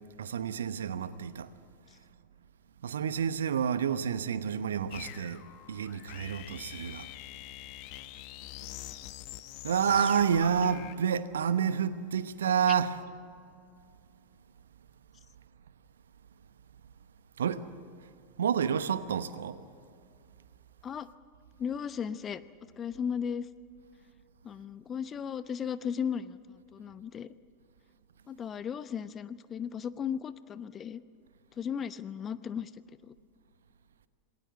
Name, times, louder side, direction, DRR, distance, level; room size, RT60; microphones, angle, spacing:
voice 1, 0.2-1.5 2.8-5.4 5.7-7.1 9.6-12.9 17.4-17.6 18.4-19.6, right 7 dB, 70° right, 1.0 m, -29 dB
sound 1, 4.9-11.0, left 15 dB, 45° left, 1.1 m, -45 dB
voice 2, 21.6-22.4 22.8-23.5 24.4-27.3 28.3-31.0 31.6-33.1, left 7 dB, 25° left, 0.8 m, -36 dB
27.5 x 20.0 x 7.7 m
figure-of-eight pair, 85°, 0 cm